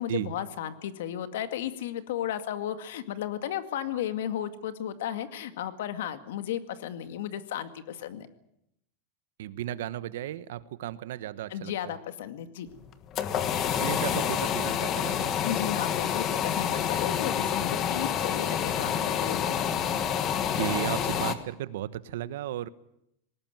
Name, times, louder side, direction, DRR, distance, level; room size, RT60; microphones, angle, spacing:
voice 1, 0.0-8.3 11.5-12.7 15.4-19.6, left 10 dB, 75° left, 10 dB, 2.1 m, -34 dB
voice 2, 9.4-11.9 13.8-15.3 20.6-22.7, right 12 dB, 75° right, 16 dB, 1.1 m, -34 dB
sound 1, 12.8-21.3, left 9 dB, 25° left, 1.5 m, -28 dB
20.0 x 18.5 x 9.3 m, 0.79 s
supercardioid pair, 170°, 0 cm